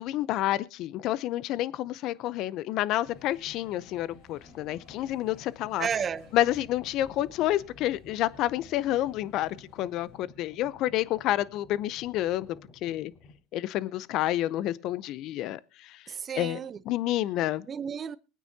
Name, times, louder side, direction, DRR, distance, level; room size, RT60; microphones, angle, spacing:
voice 1, 0.0-5.9 6.3-12.5 12.8-13.1 13.5-16.0 16.4-17.7, left 14 dB, 60° left, 0.6 m, -29 dB
sound 1, 3.0-13.4, left 3 dB, 45° left, 5.7 m, -54 dB
sound 2, 3.1-10.2, left 4 dB, 80° left, 6.6 m, -57 dB
voice 2, 5.8-6.3 16.1-16.8 17.7-18.2, right 7 dB, 35° right, 0.8 m, -32 dB
22.0 x 9.3 x 2.8 m
supercardioid pair, 115°, 0 cm